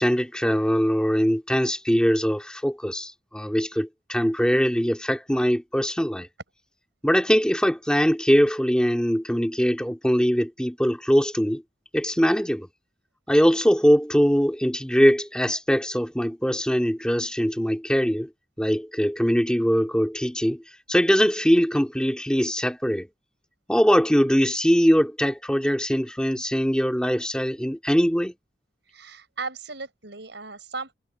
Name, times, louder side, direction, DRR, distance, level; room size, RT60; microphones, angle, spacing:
voice 1, 0.0-6.3 7.0-11.6 11.9-12.7 13.3-18.3 18.6-20.6 20.9-23.1 23.7-28.3, equal, 5° left, 2.4 m, -22 dB
voice 2, 28.8-30.9, right 4 dB, 90° right, 7.2 m, -36 dB
head